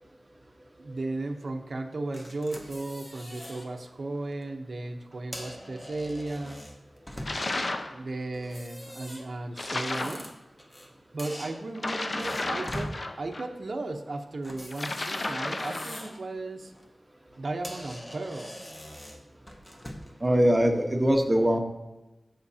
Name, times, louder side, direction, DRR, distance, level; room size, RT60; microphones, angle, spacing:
voice 1, 0.8-6.6 7.9-10.3 11.1-16.7 17.4-18.6, right 2 dB, 60° right, 4 dB, 0.8 m, -35 dB
sound 1, 2.1-3.7 4.1-4.3 5.1-7.6 8.3-10.9 11.2-13.0 14.4-16.2 16.6-16.9 17.3-17.4 17.6-20.2, equal, 20° left, 1.1 m, -43 dB
sound 2, 7.2-7.9 9.6-10.2 11.7-13.4 14.7-16.1, left 2 dB, 45° left, 0.7 m, -32 dB
voice 2, 20.2-21.6, equal, 25° right, 3 dB, 1.1 m, -22 dB
16.0 x 5.9 x 2.8 m, 1.1 s
wide cardioid pair, 100°, 0 cm